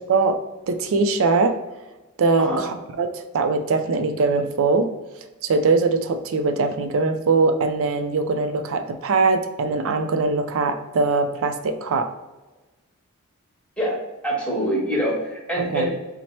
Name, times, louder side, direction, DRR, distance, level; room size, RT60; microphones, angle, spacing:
voice 1, 0.7-1.6 2.2-4.9 5.4-12.1 15.7-15.9, right 3 dB, 65° right, 8 dB, 0.4 m, -21 dB
voice 2, 14.2-15.9, right 1 dB, 5° left, -4 dB, 1.1 m, -24 dB
4.3 x 2.1 x 4.3 m, 1.1 s
head